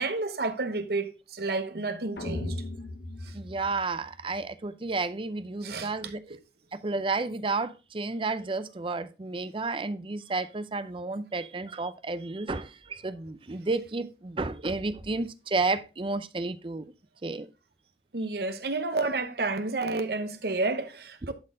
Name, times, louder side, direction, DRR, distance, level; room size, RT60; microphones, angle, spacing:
voice 1, 0.0-2.6 5.6-6.1 18.1-21.3, right 3 dB, 55° right, 1.0 m, -30 dB
sound 1, 2.2-4.4, left 1 dB, 65° left, 1.2 m, -37 dB
voice 2, 3.3-6.4 6.7-16.8 17.2-17.5, right 3 dB, 30° right, 0.5 m, -31 dB
11.5 x 4.3 x 3.8 m
head